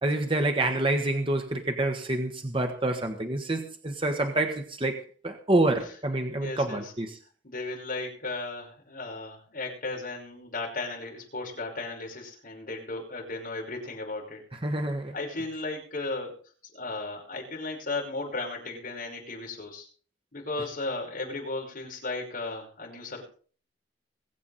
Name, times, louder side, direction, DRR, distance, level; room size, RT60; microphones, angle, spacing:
voice 1, 0.0-7.2 14.6-15.1, right 2 dB, 30° right, 1.4 m, -27 dB
voice 2, 6.4-6.9 7.4-14.4 15.1-16.3 16.7-19.9 20.3-23.3, left 2 dB, 50° left, 5.5 m, -35 dB
22.0 x 8.3 x 4.2 m
head